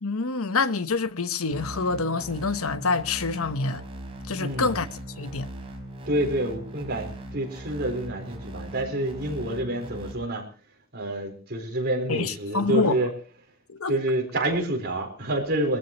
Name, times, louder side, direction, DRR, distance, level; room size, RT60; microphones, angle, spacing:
voice 1, 0.0-3.8 4.3-5.5 12.1-13.0 13.7-13.9, left 4 dB, 80° left, 1.0 m, -26 dB
sound 1, 1.5-10.1, right 1 dB, 25° right, 3.9 m, -39 dB
voice 2, 4.4-4.7 6.1-10.5 10.9-13.1 13.9-15.8, right 1 dB, 50° right, 4.4 m, -28 dB
23.0 x 15.0 x 3.0 m
head